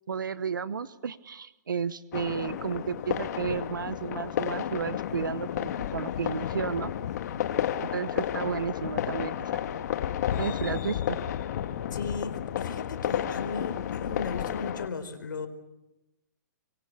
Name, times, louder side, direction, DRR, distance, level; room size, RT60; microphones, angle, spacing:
voice 1, 0.1-6.9 7.8-9.6 10.4-11.2, right 6 dB, 85° right, 16 dB, 1.0 m, -33 dB
sound 1, 2.1-14.9, left 10 dB, 55° left, 1.9 m, -32 dB
voice 2, 11.9-15.5, left 4 dB, 80° left, 9 dB, 4.6 m, -36 dB
27.0 x 23.5 x 8.2 m, 0.97 s
hypercardioid pair, 135°, 10 cm